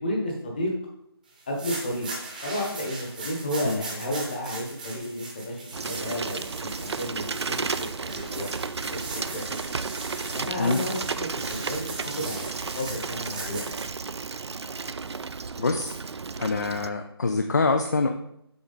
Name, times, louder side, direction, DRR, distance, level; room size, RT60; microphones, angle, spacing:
voice 1, 0.0-0.7 1.5-2.1 2.4-9.6 10.3-11.9 12.2-13.6, equal, 20° left, -1 dB, 1.2 m, -32 dB
sound 1, 1.4-13.9, right 3 dB, 20° right, 0.9 m, -39 dB
Bicycle, 5.7-16.9, right 4 dB, 80° right, 0.5 m, -33 dB
voice 2, 15.6-15.9 16.4-18.1, left 3 dB, 40° left, 5 dB, 0.5 m, -25 dB
7.0 x 4.7 x 4.0 m, 0.75 s
figure-of-eight pair, 175°, 14 cm